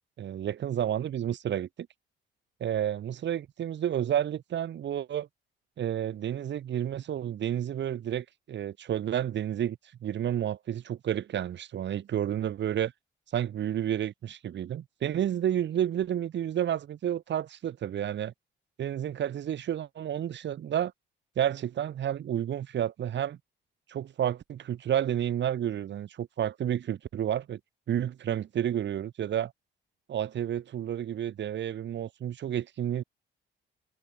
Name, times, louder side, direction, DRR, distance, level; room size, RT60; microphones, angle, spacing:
voice 1, 0.0-1.7 2.6-5.3 5.8-12.9 13.3-18.3 18.8-20.9 21.4-23.4 23.9-27.6 27.9-29.5 30.1-33.0, right 10 dB, 65° right, 2.7 m, -30 dB
cardioid pair, 90°, 20 cm